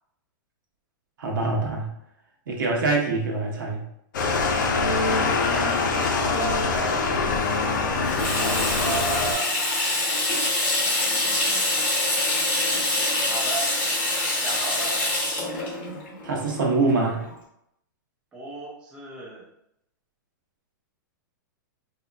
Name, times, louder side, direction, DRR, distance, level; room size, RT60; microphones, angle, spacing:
voice 1, 1.2-1.9 2.5-3.9 4.2-4.4 5.2-5.3 15.8-17.3, right 3 dB, 75° right, -1 dB, 1.1 m, -25 dB
sound 1, 4.1-9.3, left 4 dB, 65° left, 0.6 m, -24 dB
voice 2, 6.2-7.3 8.3-9.6 10.9-11.7 13.3-13.7 14.3-15.0 18.3-19.5, right 2 dB, 10° right, -4 dB, 0.5 m, -34 dB
Water tap faucet / Sink (filling or washing), 8.0-17.3, left 1 dB, 15° left, 1.1 m, -25 dB
4.0 x 2.8 x 2.5 m, 0.77 s
supercardioid pair, 175°, 11 cm